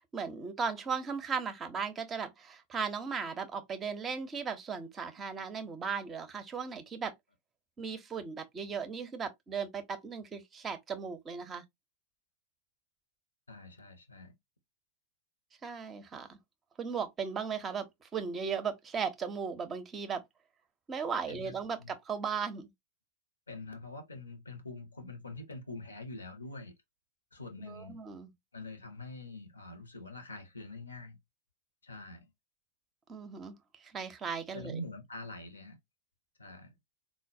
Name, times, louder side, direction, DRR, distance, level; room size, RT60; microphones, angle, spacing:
voice 1, 0.1-7.1 7.8-11.6 15.6-16.4 16.8-20.2 20.9-22.7 27.7-28.3 33.1-33.5 33.8-34.8, right 6 dB, 25° right, 0.5 m, -37 dB
voice 2, 13.5-14.4 21.3-21.9 23.5-26.7 27.3-28.0 28.5-31.2 31.8-32.3 34.5-35.8 36.4-36.8, left 2 dB, 75° left, 0.7 m, -45 dB
3.8 x 2.1 x 2.5 m
figure-of-eight pair, 90°, 0 cm